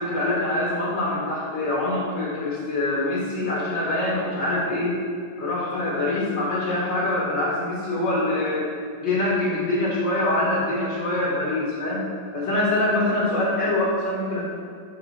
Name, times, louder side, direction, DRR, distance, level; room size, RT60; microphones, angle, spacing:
voice 1, 0.0-5.0 5.4-8.7 9.0-12.0 12.3-14.4, left 2 dB, 85° left, -6 dB, 2.7 m, -24 dB
9.8 x 3.7 x 4.3 m, 2.3 s
omnidirectional pair, 1.9 m